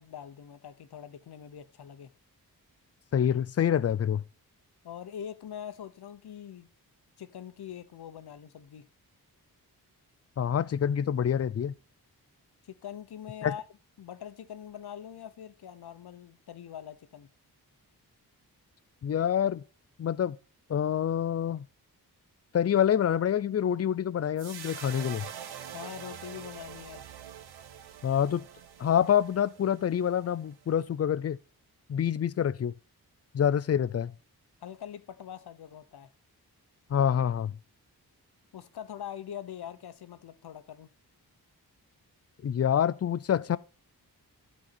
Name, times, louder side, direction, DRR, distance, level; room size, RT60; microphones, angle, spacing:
voice 1, 0.0-2.1 4.8-6.7 7.2-8.9 12.6-13.6 14.0-17.3 25.7-27.1 34.6-36.1 38.5-40.9, left 9 dB, 80° left, 0.9 m, -43 dB
voice 2, 3.1-4.2 10.4-11.7 13.4-13.5 19.0-19.6 20.0-20.4 20.7-21.7 22.5-25.3 28.0-28.4 28.8-31.4 31.9-32.7 33.3-34.1 36.9-37.5 42.4-43.6, left 9 dB, 40° left, 0.5 m, -26 dB
sound 1, 24.4-30.8, right 9 dB, 85° right, 0.8 m, -45 dB
12.0 x 4.4 x 4.3 m
wide cardioid pair, 100°, 38 cm